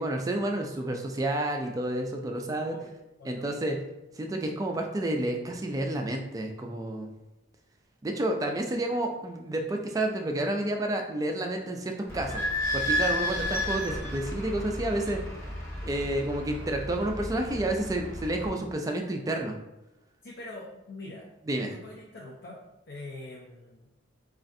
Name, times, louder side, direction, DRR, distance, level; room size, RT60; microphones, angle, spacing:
voice 1, 0.0-2.8 3.2-3.8 4.2-7.1 8.0-12.4 12.7-15.2 15.8-19.6 21.5-21.7, right 1 dB, 20° right, 3 dB, 0.3 m, -30 dB
voice 2, 2.5-3.6 20.2-21.3 21.6-23.9, left 2 dB, 55° left, -2 dB, 0.5 m, -44 dB
Idling / Squeak, 12.1-18.5, left 1 dB, 15° left, 0.8 m, -32 dB
4.2 x 2.4 x 2.5 m, 0.95 s
head